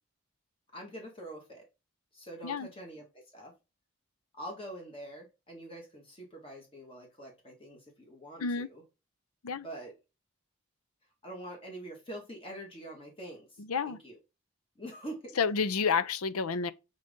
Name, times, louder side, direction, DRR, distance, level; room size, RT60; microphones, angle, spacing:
voice 1, 0.7-1.6 2.1-3.5 4.3-8.8 9.5-9.9 11.2-14.2 14.8-15.4, right 1 dB, 25° left, 1.8 m, -45 dB
voice 2, 13.6-14.0 15.4-16.7, left 5 dB, 85° left, 0.6 m, -30 dB
7.5 x 4.0 x 3.7 m
head